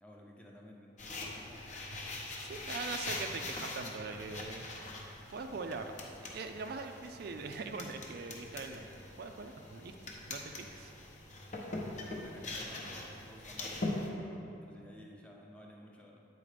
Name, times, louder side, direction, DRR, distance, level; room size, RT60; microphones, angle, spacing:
voice 1, 0.0-1.6 11.9-16.2, equal, 5° left, -2 dB, 0.6 m, -54 dB
sound 1, 1.0-14.1, left 2 dB, 40° left, 0.7 m, -42 dB
voice 2, 2.4-5.9 6.2-10.0 10.3-10.9, right 4 dB, 50° right, 5 dB, 0.3 m, -42 dB
8.6 x 4.1 x 5.0 m, 2.8 s
head